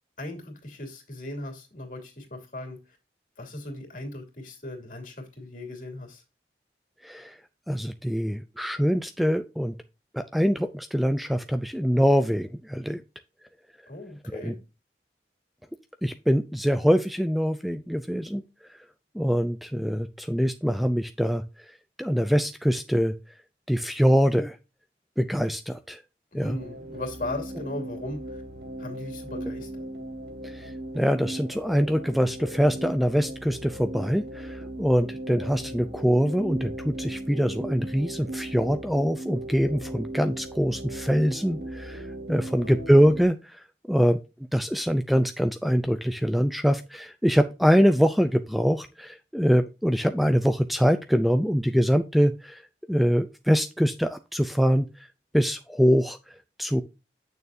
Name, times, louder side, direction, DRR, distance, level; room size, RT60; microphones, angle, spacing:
voice 1, 0.2-2.8 3.4-6.2 13.9-14.6 26.3-28.2 28.8-29.9 42.4-42.7, left 1 dB, 50° left, 2.9 m, -37 dB
voice 2, 7.0-7.4 7.7-9.8 10.1-13.0 14.3-14.5 16.0-18.4 19.1-21.4 22.0-23.1 23.7-24.6 25.2-26.0 26.3-26.6 30.4-42.0 42.3-43.4 43.9-44.2 44.5-52.6 52.9-54.9 55.3-56.2 56.6-56.8, equal, ahead, 0.4 m, -24 dB
sound 1, 26.4-43.2, right 1 dB, 75° right, 2.2 m, -37 dB
9.0 x 6.6 x 2.7 m
head